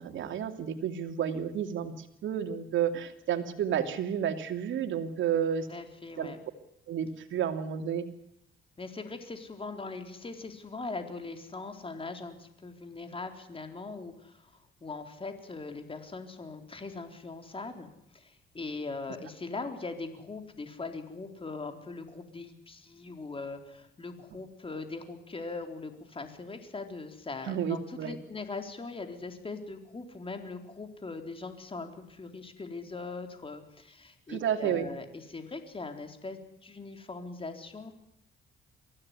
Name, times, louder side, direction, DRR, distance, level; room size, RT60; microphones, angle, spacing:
voice 1, 0.0-5.7 6.2-6.3 6.9-8.0 27.5-28.2 34.3-34.9, right 8 dB, 75° right, 7 dB, 2.9 m, -31 dB
voice 2, 5.7-6.4 8.8-14.5 14.8-37.9, left 3 dB, 25° left, 6 dB, 4.0 m, -41 dB
24.0 x 16.0 x 9.8 m, 0.77 s
cardioid pair, 90°, 20 cm